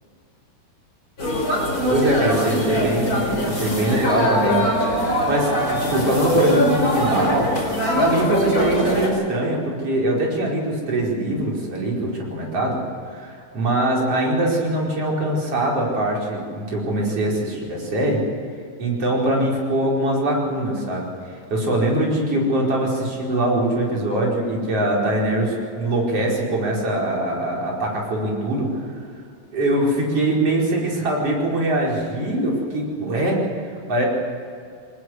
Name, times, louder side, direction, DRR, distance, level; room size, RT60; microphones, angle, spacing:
sound 1, 1.2-9.1, equal, 25° left, 5.2 m, -22 dB
voice 1, 1.9-4.6 5.3-7.5 8.0-12.8 13.1-18.2 18.8-21.1 21.5-28.7 29.5-34.1, right 1 dB, 40° right, -3 dB, 5.8 m, -22 dB
24.0 x 20.0 x 8.0 m, 2.5 s
omnidirectional pair, 4.2 m